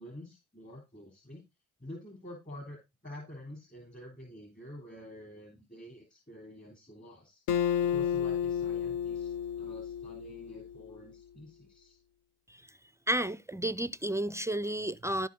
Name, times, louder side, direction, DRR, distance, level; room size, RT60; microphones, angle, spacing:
voice 1, 0.0-1.4 1.8-7.4 7.8-12.0, left 1 dB, 25° left, 3.1 m, -48 dB
Acoustic guitar, 7.5-10.9, left 8 dB, 70° left, 0.7 m, -32 dB
voice 2, 13.1-15.3, right 1 dB, 10° right, 0.4 m, -31 dB
12.5 x 4.7 x 3.8 m
hypercardioid pair, 50°, 36 cm